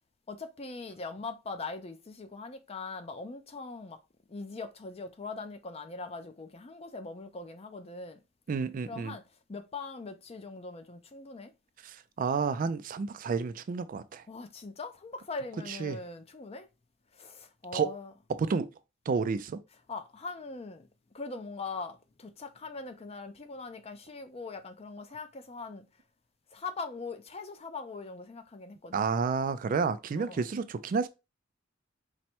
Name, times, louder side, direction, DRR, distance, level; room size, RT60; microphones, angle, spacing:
voice 1, 0.3-4.0 4.3-8.2 8.9-9.2 9.5-11.5 14.3-16.7 17.1-18.1 19.9-20.9 21.1-25.8 26.5-29.0 30.1-30.4, left 3 dB, 30° left, 0.5 m, -41 dB
voice 2, 8.5-9.2 11.8-14.2 15.7-16.0 17.7-17.9 18.3-18.7 19.1-19.6 28.9-31.1, right 5 dB, 45° right, 0.3 m, -30 dB
4.2 x 2.1 x 4.3 m
head